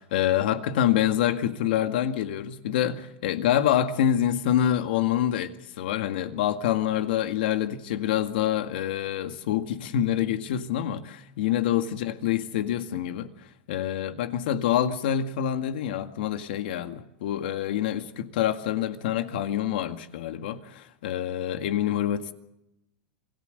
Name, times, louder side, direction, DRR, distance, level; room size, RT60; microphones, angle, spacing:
voice 1, 0.0-13.3 13.7-22.3, left 11 dB, 75° left, 2.0 m, -26 dB
27.0 x 17.5 x 6.7 m
supercardioid pair, 155°, 5 cm